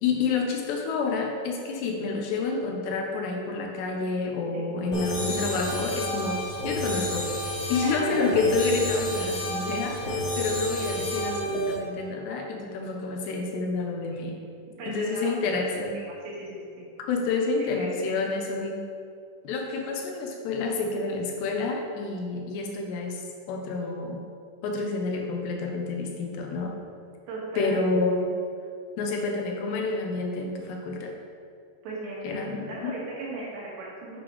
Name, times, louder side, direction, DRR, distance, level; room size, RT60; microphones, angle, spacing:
voice 1, 0.0-7.3 7.7-14.4 14.9-16.0 17.1-18.8 19.4-23.2 23.5-24.2 24.6-26.8 27.6-28.3 29.0-31.1 32.2-33.0, left 3 dB, 80° left, 1 dB, 2.9 m, -29 dB
sound 1, 4.9-11.8, equal, 50° left, 2.2 m, -30 dB
voice 2, 7.8-8.3 14.8-15.6 15.9-16.6 17.6-18.2 27.3-27.8 31.8-34.1, right 2 dB, 70° right, -6 dB, 3.8 m, -37 dB
8.2 x 7.8 x 3.2 m, 2.2 s
omnidirectional pair, 4.9 m